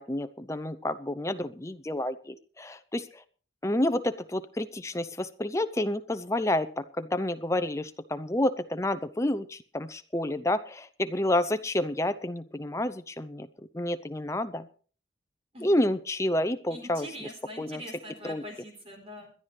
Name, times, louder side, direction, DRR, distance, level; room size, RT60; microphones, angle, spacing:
voice 1, 0.0-3.2 3.6-13.5 13.7-14.7 15.6-17.3 17.6-17.8 18.2-18.4, left 1 dB, 15° left, 11 dB, 0.7 m, -29 dB
voice 2, 16.7-19.3, equal, 35° right, 3 dB, 4.0 m, -43 dB
21.0 x 11.5 x 3.3 m, 0.40 s
head